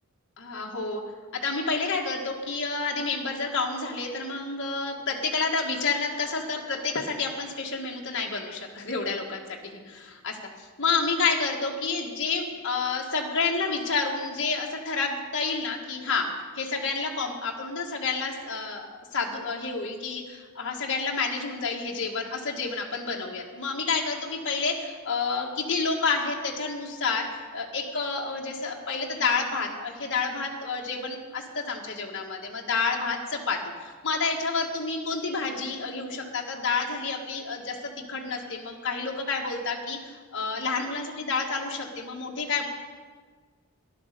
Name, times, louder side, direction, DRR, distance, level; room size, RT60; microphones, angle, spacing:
voice 1, 0.4-1.0 1.3-9.6 9.8-27.3 27.5-42.7, left 4 dB, 55° left, -1 dB, 1.7 m, -29 dB
13.5 x 11.5 x 6.8 m, 1.5 s
head